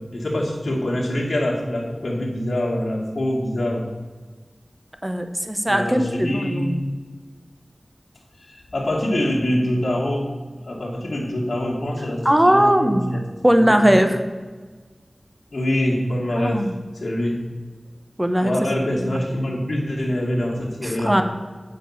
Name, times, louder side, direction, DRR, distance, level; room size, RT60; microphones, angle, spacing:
voice 1, 0.0-3.9 5.7-6.9 8.4-10.3 10.6-13.2 13.6-14.0 15.5-16.6 17.0-17.4 18.4-21.1, left 1 dB, 70° left, -2 dB, 2.1 m, -24 dB
voice 2, 5.0-6.8 12.2-14.2 16.4-16.7 18.2-18.5 19.0-19.2 20.8-21.2, equal, 15° right, 6 dB, 0.9 m, -19 dB
7.7 x 5.3 x 7.2 m, 1.4 s
wide cardioid pair, 60°, 0 cm